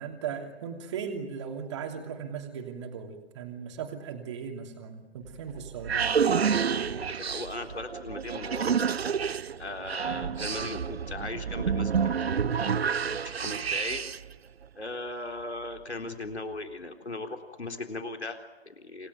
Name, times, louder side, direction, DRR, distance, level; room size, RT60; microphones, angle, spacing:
voice 1, 0.0-6.1 10.0-10.4, right 7 dB, 25° right, 4 dB, 3.0 m, -38 dB
sound 1, 5.3-14.3, right 6 dB, 70° right, 0.7 m, -29 dB
voice 2, 6.6-8.7 9.6-14.0 14.8-19.1, left 2 dB, 85° left, 5 dB, 3.9 m, -38 dB
28.0 x 18.0 x 9.5 m, 1.1 s
figure-of-eight pair, 150°, 32 cm